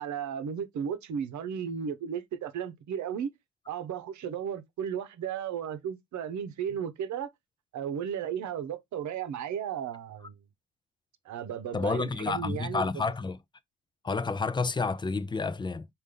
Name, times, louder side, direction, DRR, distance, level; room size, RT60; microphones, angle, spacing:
voice 1, 0.0-3.3 3.7-7.3 7.7-10.4 11.2-12.9, right 8 dB, 70° right, 0.9 m, -34 dB
voice 2, 11.7-13.4 14.0-15.9, left 4 dB, 15° left, 0.4 m, -30 dB
5.1 x 2.6 x 3.6 m
cardioid pair, 90°, 30 cm